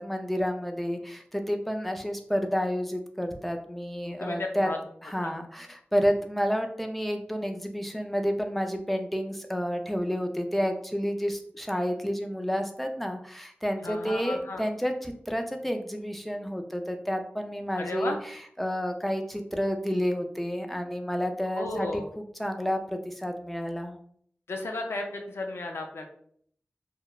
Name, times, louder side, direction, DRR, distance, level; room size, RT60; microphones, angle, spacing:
voice 1, 0.0-4.7 5.0-18.1 18.6-24.0, equal, 5° left, 4 dB, 0.4 m, -30 dB
voice 2, 4.0-4.8 5.2-5.3 13.8-14.6 17.8-18.2 21.6-22.1 24.5-26.1, left 2 dB, 85° left, 3 dB, 0.4 m, -34 dB
2.9 x 2.1 x 2.3 m, 0.62 s
wide cardioid pair, 60°, 4 cm